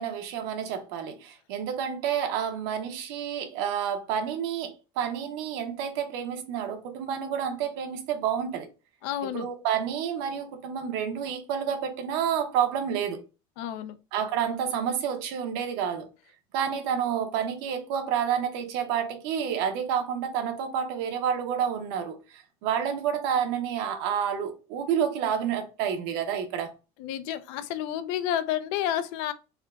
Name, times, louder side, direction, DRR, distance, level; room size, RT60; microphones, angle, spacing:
voice 1, 0.0-8.7 9.2-13.2 14.1-16.1 16.5-22.2 22.6-26.7, right 8 dB, 75° right, 0.9 m, -29 dB
voice 2, 9.0-9.5 13.6-14.0 27.0-29.3, left 11 dB, 70° left, 0.5 m, -30 dB
3.6 x 2.2 x 3.6 m
cardioid pair, 165°, 12 cm